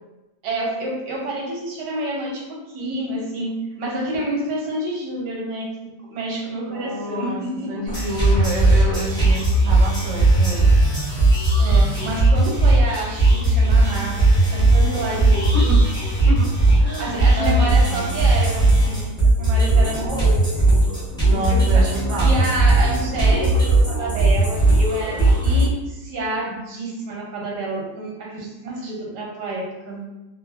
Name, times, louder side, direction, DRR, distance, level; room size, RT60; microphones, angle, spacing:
voice 1, 0.4-7.7 11.6-15.6 17.0-20.9 21.2-21.9 22.2-30.0, right 1 dB, 90° right, -2 dB, 1.3 m, -29 dB
voice 2, 6.7-7.4 7.7-10.7 11.9-12.1 15.2-15.8 16.2-18.2 21.3-22.5, right 1 dB, 65° right, -3 dB, 0.6 m, -29 dB
sound 1, 7.9-25.6, right 2 dB, 5° left, 0.4 m, -17 dB
3.4 x 2.1 x 2.2 m, 1.0 s
omnidirectional pair, 1.8 m